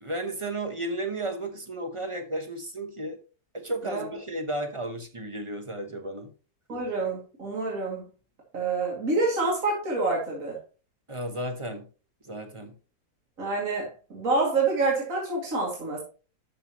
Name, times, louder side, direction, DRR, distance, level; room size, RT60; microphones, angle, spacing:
voice 1, 0.0-3.2 3.5-6.3 11.1-11.9 12.2-12.7, right 1 dB, 25° right, 7 dB, 0.8 m, -33 dB
voice 2, 6.7-8.0 8.5-10.6 13.4-16.0, right 3 dB, 55° right, -3 dB, 2.8 m, -27 dB
12.0 x 5.8 x 2.9 m, 0.36 s
omnidirectional pair, 1.7 m